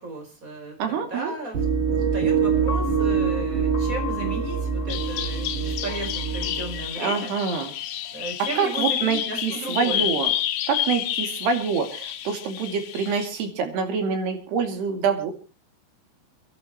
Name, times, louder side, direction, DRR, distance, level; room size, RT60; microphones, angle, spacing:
voice 1, 0.0-1.6 1.9-7.3 8.1-10.1, right 2 dB, 20° right, 3 dB, 5.0 m, -35 dB
voice 2, 0.8-1.3 7.0-7.7 8.6-10.3 10.7-15.3, right 6 dB, 70° right, 5 dB, 4.6 m, -26 dB
sound 1, 1.5-6.9, right 6 dB, 50° right, 3.9 m, -25 dB
Piano, 2.7-8.9, left 8 dB, 60° left, 3.6 m, -40 dB
Bird vocalization bird call bird song, 4.9-13.3, left 12 dB, 85° left, 3.4 m, -30 dB
30.0 x 11.0 x 3.0 m, 0.33 s
omnidirectional pair, 4.9 m